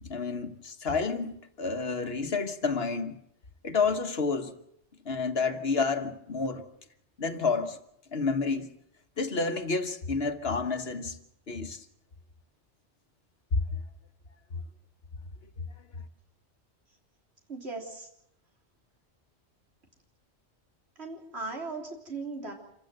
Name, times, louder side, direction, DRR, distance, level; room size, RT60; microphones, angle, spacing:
voice 1, 0.0-3.2 3.6-4.5 5.0-6.6 7.2-7.8 8.1-8.7 9.2-11.2 11.5-11.8 13.5-13.6, left 4 dB, 60° left, 1.5 m, -29 dB
voice 2, 17.5-18.1 21.0-22.5, right 3 dB, 65° right, 3.9 m, -38 dB
26.5 x 15.5 x 7.9 m
omnidirectional pair, 1.2 m